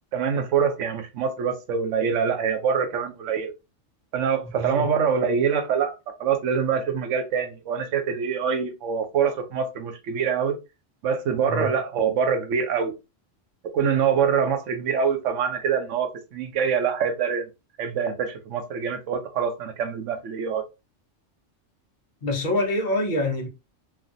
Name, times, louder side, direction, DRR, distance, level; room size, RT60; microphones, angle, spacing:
voice 1, 0.1-3.5 4.1-5.9 6.2-10.6 11.0-12.9 13.6-17.5 17.8-20.6, right 6 dB, 80° right, 1.0 m, -25 dB
voice 2, 4.4-4.9 11.4-11.7 22.2-23.5, left 1 dB, 45° left, 0.9 m, -26 dB
3.3 x 2.3 x 2.5 m
omnidirectional pair, 1.3 m